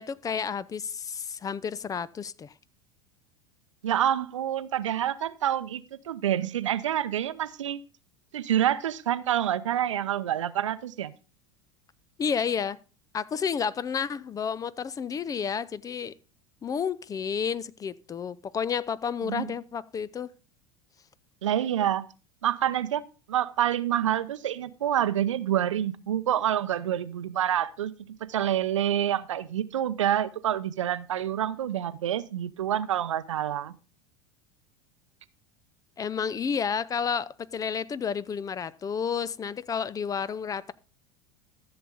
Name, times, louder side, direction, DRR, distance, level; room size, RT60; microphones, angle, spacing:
voice 1, 0.0-2.5 12.2-12.8 13.1-16.1 16.6-20.3 36.0-40.7, left 6 dB, 20° left, 0.5 m, -31 dB
voice 2, 3.8-7.8 8.3-11.1 19.2-19.5 21.4-22.0 22.4-23.0 23.3-27.9 28.3-33.7, right 11 dB, 75° right, 0.6 m, -27 dB
13.5 x 7.0 x 3.9 m
hypercardioid pair, 80°, 16 cm